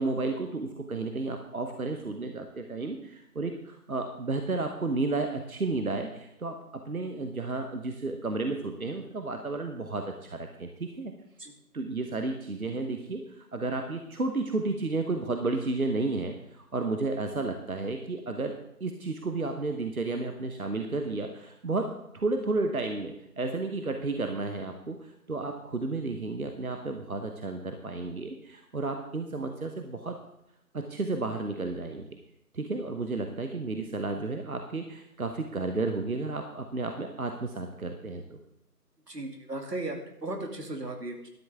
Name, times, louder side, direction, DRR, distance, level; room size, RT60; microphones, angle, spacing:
voice 1, 0.0-11.1 11.7-30.2 30.7-32.1 32.5-38.4, right 3 dB, 60° right, 5 dB, 1.2 m, -32 dB
voice 2, 39.1-41.3, right 2 dB, 85° right, 4 dB, 2.5 m, -36 dB
12.5 x 12.0 x 3.6 m, 0.81 s
figure-of-eight pair, 175°, 47 cm